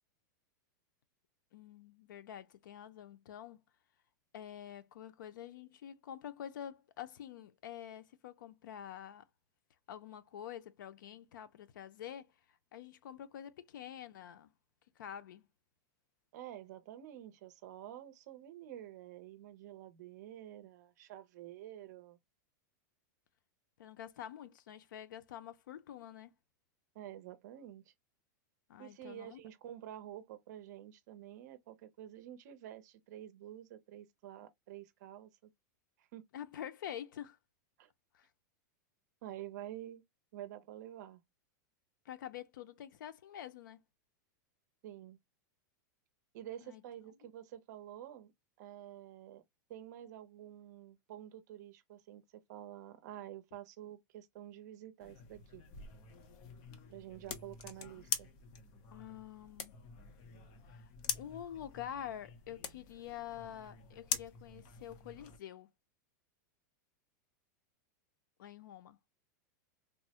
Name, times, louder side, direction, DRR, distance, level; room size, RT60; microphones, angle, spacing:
voice 1, 1.5-3.6 4.3-9.2 9.9-14.5 15.0-15.4 23.8-26.3 28.7-29.4 36.3-37.4 38.1-38.3 42.1-43.8 46.6-46.8 58.9-59.7 60.7-65.7 68.4-69.0, left 10 dB, 85° left, 0.5 m, -47 dB
voice 2, 16.3-22.2 26.9-27.8 28.8-35.5 36.0-36.2 37.8-37.9 39.2-40.0 40.3-41.2 44.8-45.2 46.3-48.3 48.6-49.4 49.7-55.6 56.9-58.3, right 12 dB, 60° right, 0.6 m, -49 dB
sound 1, 55.0-65.4, left 7 dB, 40° left, 0.6 m, -44 dB
3.4 x 2.0 x 2.8 m
supercardioid pair, 155°, 10 cm